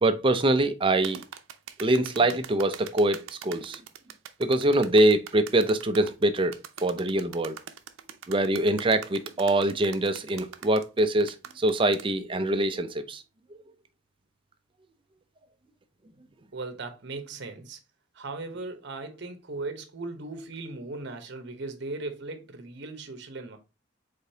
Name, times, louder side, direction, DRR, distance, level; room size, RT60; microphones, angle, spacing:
voice 1, 0.0-1.2 1.8-3.8 4.4-7.6 8.3-13.2, right 1 dB, 25° right, 0.5 m, -24 dB
sound 1, 1.0-12.1, right 8 dB, 80° right, 0.6 m, -43 dB
voice 2, 16.5-17.8 18.1-23.6, right 3 dB, 60° right, 1.0 m, -38 dB
5.1 x 3.8 x 2.7 m
head